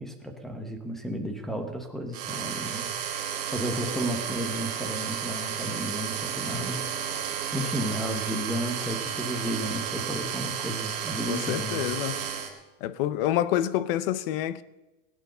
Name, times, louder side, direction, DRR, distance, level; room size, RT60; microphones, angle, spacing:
voice 1, 0.0-2.9 3.5-6.9 7.5-11.8, equal, ahead, 1.0 m, -33 dB
sound 1, 2.1-12.5, right 8 dB, 35° right, 2.8 m, -32 dB
voice 2, 11.3-12.2 12.8-14.6, left 12 dB, 45° left, 0.7 m, -27 dB
19.0 x 9.1 x 6.6 m
supercardioid pair, 175°, 38 cm